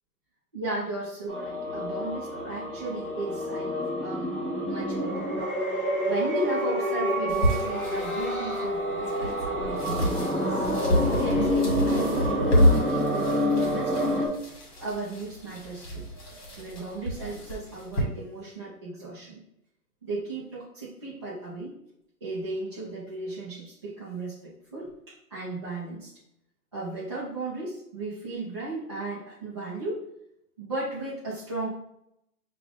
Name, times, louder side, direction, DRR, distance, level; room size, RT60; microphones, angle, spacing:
voice 1, 0.5-5.3 6.1-10.7 11.1-12.2 12.6-14.3 14.8-16.1 16.6-19.4 20.0-21.8 22.2-26.1 26.7-30.0 30.6-31.7, right 2 dB, 20° right, -10 dB, 0.5 m, -35 dB
sound 1, 1.3-14.3, equal, 5° left, 1.1 m, -28 dB
sound 2, 7.3-18.0, equal, 30° left, 1.6 m, -29 dB
5.4 x 2.5 x 3.4 m, 0.79 s
hypercardioid pair, 155°, 45 cm